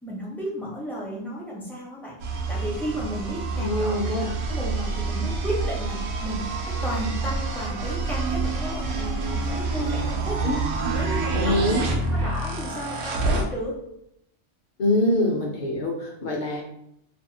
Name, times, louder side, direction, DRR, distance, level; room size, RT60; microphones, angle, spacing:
voice 1, 0.0-4.1 4.5-10.4 10.8-11.6 12.1-13.8, equal, ahead, -5 dB, 0.4 m, -33 dB
sound 1, 2.2-13.4, right 3 dB, 80° right, 0.9 m, -27 dB
voice 2, 3.5-4.3 10.4-10.6 11.3-11.8 14.8-16.6, left 1 dB, 50° left, 0 dB, 0.6 m, -24 dB
2.6 x 2.3 x 2.7 m, 0.76 s
omnidirectional pair, 1.3 m